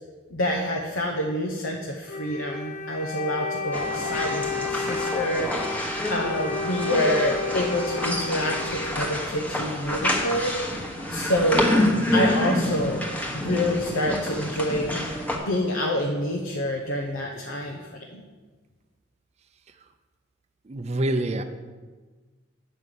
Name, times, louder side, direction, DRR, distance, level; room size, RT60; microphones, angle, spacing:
voice 1, 0.3-5.8 6.1-10.5 11.1-11.8 12.1-13.1 13.3-15.1 15.4-18.2, equal, 85° left, 0 dB, 0.9 m, -27 dB
Wind instrument woodwind instrument, 2.1-9.6, left 4 dB, 40° left, 0.9 m, -32 dB
sound 1, 3.7-15.4, left 1 dB, 10° left, 1.2 m, -28 dB
voice 2, 20.7-21.4, right 1 dB, 35° right, 8 dB, 0.5 m, -26 dB
9.1 x 5.5 x 6.7 m, 1.4 s
head